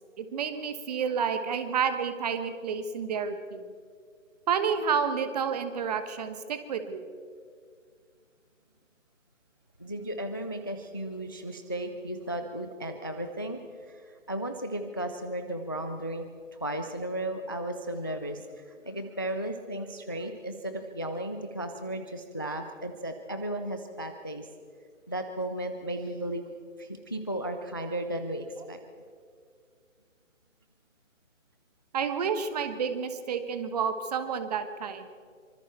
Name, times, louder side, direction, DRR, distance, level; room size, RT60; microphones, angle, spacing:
voice 1, 0.2-3.6 4.5-7.1 31.9-35.1, right 6 dB, 30° right, 10 dB, 1.4 m, -30 dB
voice 2, 9.8-13.6 13.9-24.5 25.1-26.5 26.8-28.8, right 1 dB, 20° left, 7 dB, 0.4 m, -35 dB
25.0 x 24.5 x 4.6 m, 2.1 s
figure-of-eight pair, 145°, 40 cm